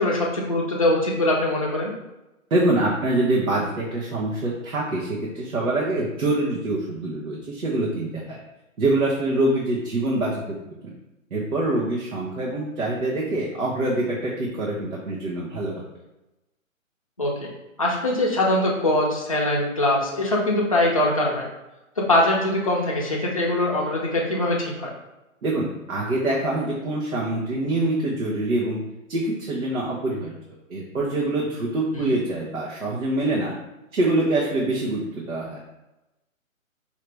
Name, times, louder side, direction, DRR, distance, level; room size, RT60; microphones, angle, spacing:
voice 1, 0.0-1.9 17.2-17.5 17.8-21.5 22.0-24.9 31.9-32.2, left 1 dB, 25° left, -3 dB, 0.5 m, -22 dB
voice 2, 2.5-8.4 8.8-10.4 10.8-10.9 11.3-15.8 25.4-28.8 29.1-30.3 30.7-33.5 33.9-35.6, right 2 dB, 80° right, -5 dB, 1.2 m, -25 dB
4.9 x 2.8 x 3.3 m, 0.96 s
hypercardioid pair, 170°, 41 cm